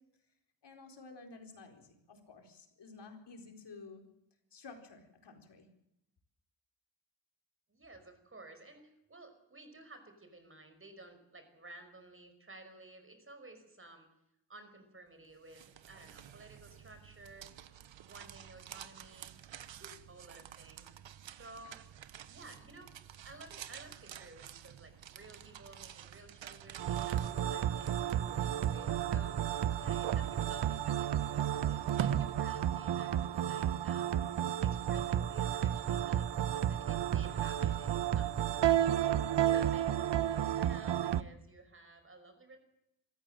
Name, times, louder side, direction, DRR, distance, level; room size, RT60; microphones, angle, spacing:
voice 1, 0.6-4.0 4.5-5.7, left 4 dB, 65° left, 4 dB, 4.4 m, -52 dB
voice 2, 7.7-14.1 14.5-17.5 18.0-19.4 19.7-20.9 21.3-21.8 22.3-22.9 23.2-34.2 34.6-40.1 40.6-42.6, right 2 dB, 30° right, 8 dB, 5.4 m, -54 dB
sound 1, 15.2-33.3, right 9 dB, 90° right, 1.2 m, -46 dB
sound 2, 26.8-41.2, right 11 dB, 70° right, 0.9 m, -32 dB
26.5 x 14.5 x 7.7 m, 0.83 s
wide cardioid pair, 105°, 44 cm